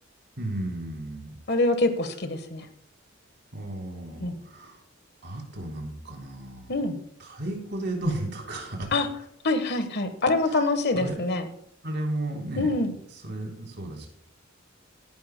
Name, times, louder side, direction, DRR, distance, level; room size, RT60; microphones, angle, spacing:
voice 1, 0.4-1.4 3.5-4.8 5.2-6.7 7.2-9.0 10.5-10.6 10.9-11.2 11.8-12.7 13.2-14.1, right 1 dB, 55° right, 1 dB, 3.5 m, -33 dB
voice 2, 1.5-2.7 4.2-4.4 6.7-7.0 8.9-9.1 9.4-11.5 12.6-12.9, left 2 dB, 55° left, 9 dB, 1.2 m, -25 dB
17.0 x 11.0 x 2.2 m, 0.71 s
head